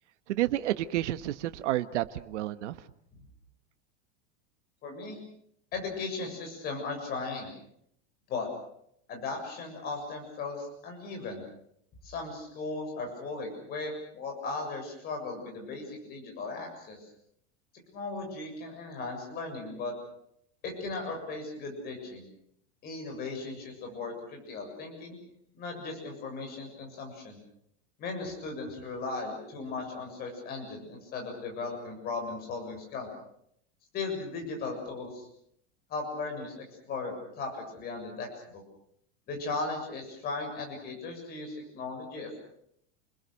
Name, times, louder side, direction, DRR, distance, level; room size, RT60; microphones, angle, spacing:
voice 1, 0.3-2.8, right 14 dB, 90° right, 11 dB, 1.4 m, -30 dB
voice 2, 4.8-5.2 5.7-7.5 8.3-8.5 9.1-11.4 12.0-17.0 17.9-20.0 20.6-22.3 22.8-25.2 25.5-27.4 28.0-33.1 33.9-35.3 35.9-38.6 39.3-42.4, left 3 dB, 25° left, 3 dB, 7.3 m, -37 dB
29.5 x 21.5 x 6.5 m, 0.72 s
supercardioid pair, 175°, 34 cm